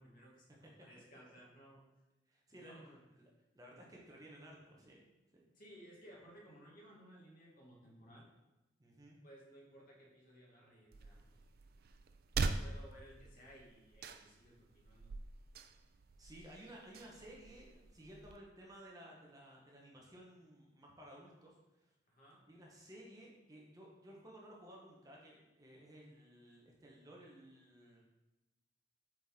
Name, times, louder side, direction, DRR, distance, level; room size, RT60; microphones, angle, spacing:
voice 1, 0.0-1.9 2.5-3.0 5.5-8.3 9.2-11.3 12.6-15.2 22.1-22.4, equal, 55° left, -3 dB, 1.8 m, -59 dB
voice 2, 2.3-2.8 3.1-3.3 3.5-5.0 5.3-5.4 8.8-9.2 16.2-21.9 22.5-28.0, right 1 dB, 20° right, -2 dB, 1.1 m, -56 dB
sound 1, 10.9-18.4, right 3 dB, 60° right, 0.4 m, -43 dB
7.8 x 4.2 x 3.7 m, 1.0 s
head